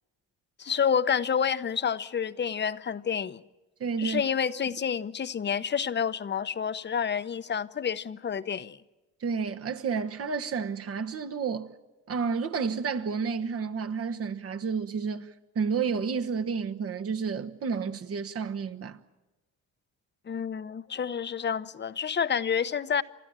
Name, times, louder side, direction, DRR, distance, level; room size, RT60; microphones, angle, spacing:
voice 1, 0.6-3.4 4.0-8.8 20.3-23.0, left 7 dB, 35° left, 0.8 m, -29 dB
voice 2, 3.8-4.2 9.2-11.7 12.1-15.3 15.5-19.0, right 5 dB, 50° right, 1.2 m, -30 dB
30.0 x 13.0 x 8.9 m
cardioid pair, 90°, 30 cm